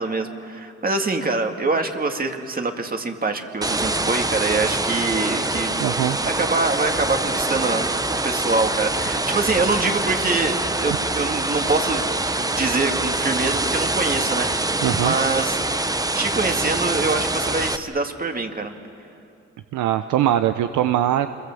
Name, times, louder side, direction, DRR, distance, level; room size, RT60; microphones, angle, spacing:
voice 1, 0.0-5.8 6.2-12.0 12.4-14.5 15.0-15.6 16.1-18.7, right 3 dB, 30° right, 4 dB, 2.2 m, -24 dB
sound 1, 3.6-17.8, right 2 dB, 10° right, 1.0 m, -24 dB
voice 2, 5.8-6.2 14.8-15.1 19.7-21.3, right 12 dB, 80° right, 9 dB, 0.8 m, -21 dB
28.0 x 21.5 x 7.7 m, 2.6 s
cardioid pair, 90°, 30 cm